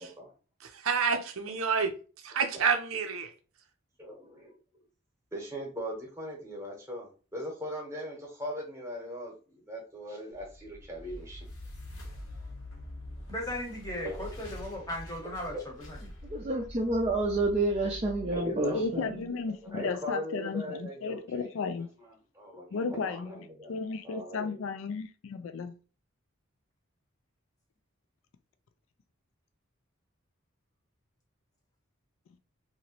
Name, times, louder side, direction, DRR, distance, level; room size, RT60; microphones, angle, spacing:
voice 1, 0.0-0.3 2.5-2.7 4.0-4.5 5.3-11.5 14.0-14.3 18.3-19.0 19.5-21.5 22.3-23.7 24.0-24.7, equal, 15° right, 0.9 m, -39 dB
voice 2, 0.8-1.9 2.2-3.3, right 5 dB, 75° right, 0.6 m, -28 dB
sound 1, 10.3-19.5, left 1 dB, 85° left, 1.0 m, -45 dB
voice 3, 13.3-15.6 15.9-16.1, left 1 dB, 15° left, 0.8 m, -37 dB
voice 4, 16.3-19.2, right 2 dB, 30° right, 0.4 m, -29 dB
voice 5, 18.7-21.9 22.7-25.8, left 4 dB, 70° left, 0.3 m, -34 dB
2.9 x 2.6 x 2.8 m
head